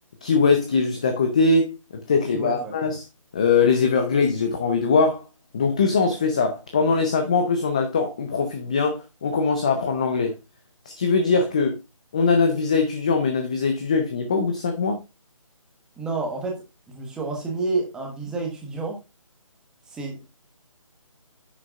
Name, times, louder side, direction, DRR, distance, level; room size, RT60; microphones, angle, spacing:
voice 1, 0.2-3.0 3.3-5.2 5.5-10.3 10.9-11.8 12.1-15.0, left 4 dB, 10° left, 0.5 m, -21 dB
voice 2, 2.3-2.8 16.0-19.0 19.9-20.2, right 3 dB, 5° right, 1.2 m, -29 dB
9.8 x 7.6 x 2.4 m
figure-of-eight pair, 165°, 18 cm